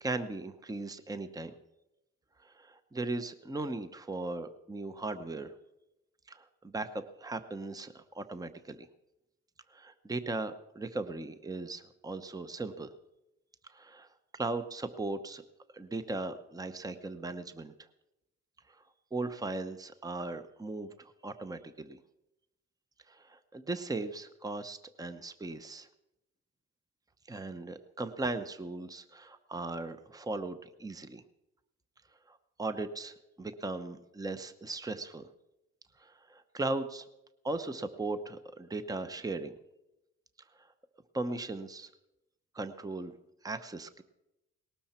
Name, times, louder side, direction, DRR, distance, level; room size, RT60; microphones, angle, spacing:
voice 1, 0.0-1.5 2.4-5.5 6.3-8.9 9.7-12.9 13.7-14.1 14.4-15.4 15.7-17.7 19.1-22.0 23.1-25.9 27.3-31.2 32.3-35.3 36.0-37.0 37.4-39.6 41.1-41.9 42.5-43.1 43.4-44.0, right 2 dB, 10° right, 10 dB, 0.8 m, -38 dB
18.5 x 12.5 x 4.4 m, 0.91 s
cardioid pair, 90°, 30 cm